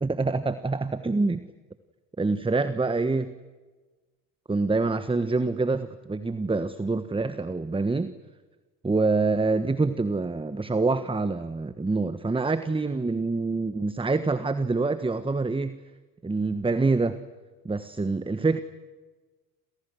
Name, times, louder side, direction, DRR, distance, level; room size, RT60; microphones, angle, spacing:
voice 1, 0.0-1.5 2.2-3.3 4.5-8.1 8.8-15.8 16.2-17.2 17.6-18.6, right 3 dB, 10° right, 12 dB, 1.3 m, -26 dB
28.5 x 28.5 x 6.4 m, 1.3 s
hypercardioid pair, 70°, 46 cm